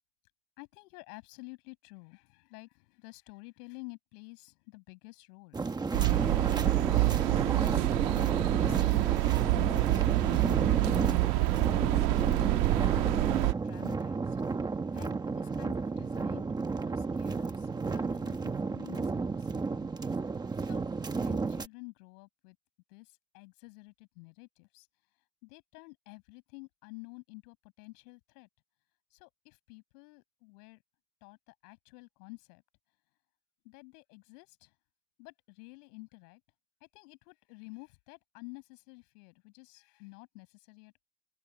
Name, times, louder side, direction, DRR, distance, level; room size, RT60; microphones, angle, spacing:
voice 1, 0.6-5.6 5.9-7.9 8.6-11.0 11.3-12.6 12.9-14.4 14.9-16.5 16.8-19.9 20.6-22.6 22.9-24.9 25.4-28.5 29.1-30.8 31.2-32.6 33.6-34.7 35.2-36.4 36.8-41.1, left 29 dB, 65° left, 7.1 m, -51 dB
sound 1, 5.5-21.7, right 4 dB, 10° right, 1.0 m, -32 dB
sound 2, 5.9-13.5, right 25 dB, 70° right, 1.4 m, -27 dB
open air
cardioid pair, 170°, 49 cm